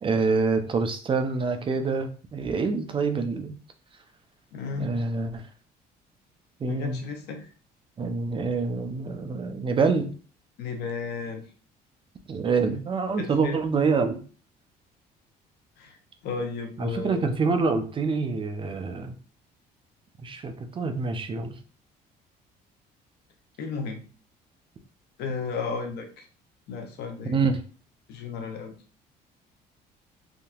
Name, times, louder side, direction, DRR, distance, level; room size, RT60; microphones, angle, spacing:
voice 1, 0.0-3.6 4.8-5.4 6.6-7.0 8.0-10.1 12.3-14.2 16.8-19.1 20.2-21.5 27.2-27.6, right 4 dB, 30° right, 7 dB, 0.5 m, -26 dB
voice 2, 4.5-5.0 6.6-7.5 10.6-11.5 13.2-13.6 15.8-16.0 16.2-17.3 23.6-24.0 25.2-26.2 26.7-27.4 28.1-28.7, left 4 dB, 75° left, 4 dB, 0.8 m, -33 dB
3.6 x 2.7 x 2.4 m, 0.39 s
cardioid pair, 110°, 17 cm